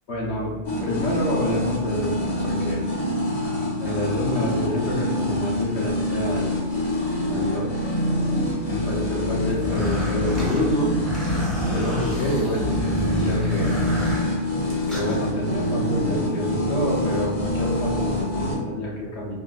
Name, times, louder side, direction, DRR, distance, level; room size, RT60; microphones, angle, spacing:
voice 1, 0.1-2.8 3.8-6.6 7.3-7.7 8.7-10.9 11.7-13.8 14.9-19.3, left 1 dB, 60° left, -3 dB, 0.9 m, -28 dB
sound 1, 0.6-18.6, left 1 dB, 40° left, 0.5 m, -26 dB
sound 2, 9.5-15.2, left 1 dB, ahead, 0.6 m, -29 dB
3.7 x 2.0 x 2.4 m, 1.3 s
omnidirectional pair, 1.4 m